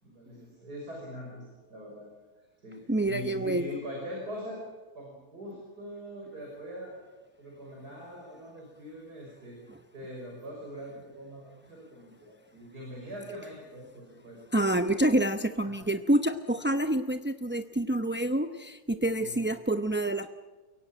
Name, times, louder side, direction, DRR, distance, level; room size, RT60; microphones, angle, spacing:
voice 1, 0.0-2.1 2.6-4.6 4.9-9.6 9.9-14.4 15.6-15.9 19.2-19.4, equal, 85° right, -1 dB, 6.6 m, -42 dB
voice 2, 2.9-3.7 14.5-20.3, right 1 dB, 15° right, 7 dB, 0.4 m, -27 dB
29.5 x 17.5 x 8.9 m, 1.3 s
omnidirectional pair, 1.7 m